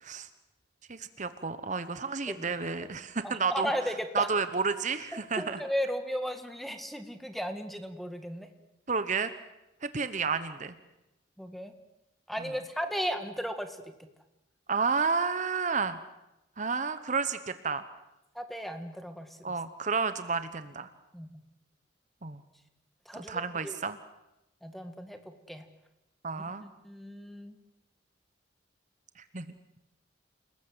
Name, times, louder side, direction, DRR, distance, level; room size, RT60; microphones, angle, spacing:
voice 1, 0.9-3.7 4.1-5.6 8.9-9.3 9.8-10.7 14.7-16.0 16.6-17.8 19.4-20.9 22.2-22.4 23.1-24.0 26.2-26.6 29.3-29.5, right 5 dB, 40° right, 11 dB, 1.0 m, -31 dB
voice 2, 3.2-4.3 5.1-8.5 11.4-11.7 12.3-13.9 18.4-19.5 21.1-21.4 23.1-23.8 24.6-25.2 25.5-25.6 26.6-27.6, equal, ahead, 7 dB, 1.9 m, -35 dB
29.0 x 20.0 x 8.0 m, 0.93 s
head